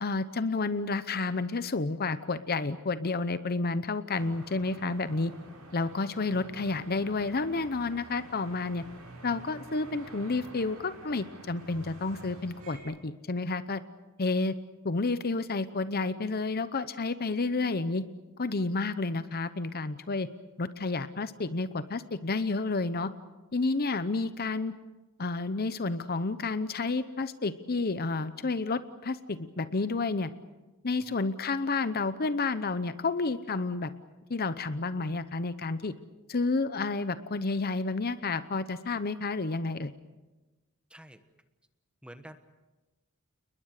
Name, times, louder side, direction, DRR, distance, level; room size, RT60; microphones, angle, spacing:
voice 1, 0.0-5.3 5.7-8.8 9.2-13.8 14.2-14.5 14.8-18.0 18.4-20.3 20.6-23.1 23.5-24.7 25.2-30.3 30.8-33.9 34.3-35.9 36.3-39.9, left 3 dB, 45° left, 13 dB, 0.8 m, -30 dB
sound 1, 4.1-12.8, right 1 dB, 90° right, 7.7 m, -49 dB
voice 2, 40.9-41.2 42.0-42.4, right 1 dB, 5° right, 9 dB, 1.3 m, -48 dB
29.5 x 21.0 x 6.6 m, 1.1 s
head